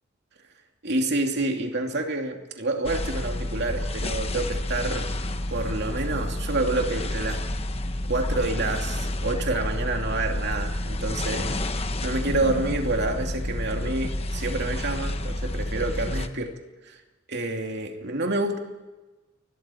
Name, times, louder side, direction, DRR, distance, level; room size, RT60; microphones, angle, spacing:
voice 1, 0.8-5.1 5.5-7.4 8.1-11.6 12.0-16.5 16.9-17.0 17.3-18.6, right 2 dB, 60° right, 3 dB, 2.7 m, -28 dB
sound 1, 2.8-16.3, left 1 dB, 30° left, 1.2 m, -29 dB
28.5 x 21.5 x 4.5 m, 1.2 s
head